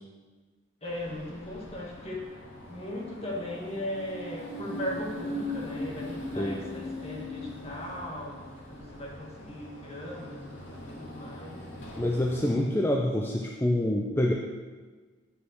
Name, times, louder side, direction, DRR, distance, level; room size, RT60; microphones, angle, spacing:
sound 1, 0.8-12.6, left 1 dB, 85° left, 2.1 m, -41 dB
voice 1, 0.8-2.3 2.7-11.6, left 1 dB, 30° left, -2 dB, 1.6 m, -38 dB
voice 2, 12.0-14.3, left 1 dB, 10° left, 0 dB, 0.5 m, -26 dB
8.4 x 5.5 x 6.4 m, 1.4 s
head